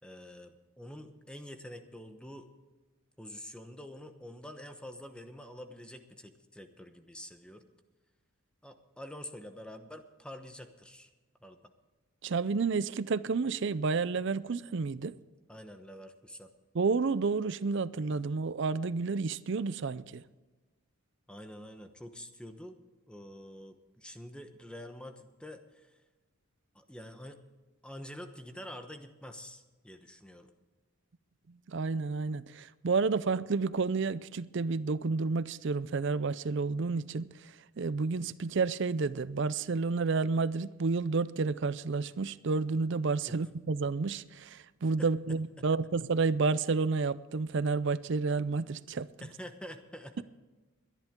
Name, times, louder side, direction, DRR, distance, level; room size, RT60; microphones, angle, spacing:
voice 1, 0.0-2.5 3.2-7.7 8.6-11.1 11.4-11.6 15.5-16.5 21.3-22.8 23.1-26.0 26.7-27.4 27.8-30.5 43.3-43.4 45.0-45.1 45.6-45.7 49.2-50.2, equal, 5° left, 1.0 m, -47 dB
voice 2, 12.2-15.1 16.7-20.2 31.7-37.3 37.8-49.1, right 4 dB, 55° right, 0.5 m, -30 dB
22.0 x 10.5 x 3.7 m
head